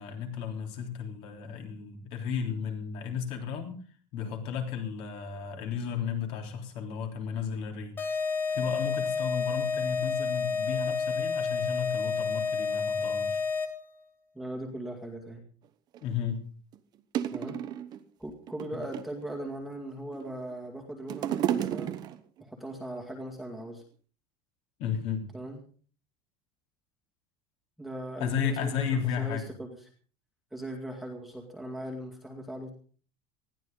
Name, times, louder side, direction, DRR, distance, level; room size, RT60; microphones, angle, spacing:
voice 1, 0.0-3.8 4.1-13.4 16.0-16.4 24.8-25.2 28.2-29.4, left 7 dB, 45° left, 3 dB, 3.5 m, -34 dB
sound 1, 8.0-13.9, left 5 dB, 15° left, 1.5 m, -30 dB
voice 2, 14.3-15.4 17.3-17.6 18.2-21.9 22.4-23.8 25.3-25.6 27.8-29.7 30.5-32.7, right 1 dB, ahead, 0 dB, 2.2 m, -39 dB
sound 2, 15.9-16.0 16.7-16.8 17.1-18.0 18.5-19.2 19.9-20.5 20.8-22.4 23.2-23.3, right 10 dB, 30° right, 1.0 m, -32 dB
20.0 x 14.5 x 3.9 m, 0.41 s
cardioid pair, 175°, 14 cm